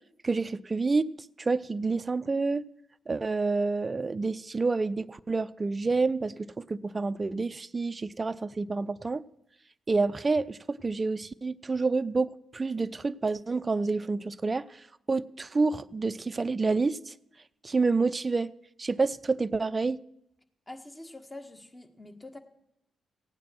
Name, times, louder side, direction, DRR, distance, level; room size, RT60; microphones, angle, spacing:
voice 1, 0.2-1.1 1.4-2.6 3.1-9.2 9.9-17.1 17.6-18.5 18.8-20.0, right 3 dB, 35° right, 0.5 m, -28 dB
voice 2, 20.7-22.4, left 2 dB, 20° left, 1.7 m, -45 dB
15.5 x 9.2 x 6.1 m
hypercardioid pair, 45°, 0 cm